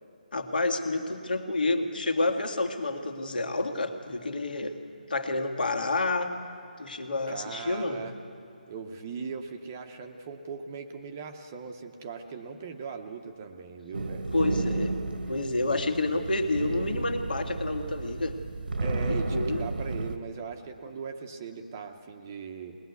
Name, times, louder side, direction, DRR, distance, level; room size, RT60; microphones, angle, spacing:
voice 1, 0.3-4.8 5.1-6.4 6.8-8.0 14.3-14.9 15.3-18.4 19.1-19.7, left 2 dB, 75° left, 5 dB, 2.0 m, -29 dB
voice 2, 7.3-8.1 8.7-14.3 18.8-22.8, right 5 dB, 15° right, 5 dB, 0.7 m, -39 dB
sound 1, 13.9-20.2, right 2 dB, 90° right, 1.3 m, -32 dB
21.5 x 20.0 x 8.2 m, 2.6 s
hypercardioid pair, 175°, 5 cm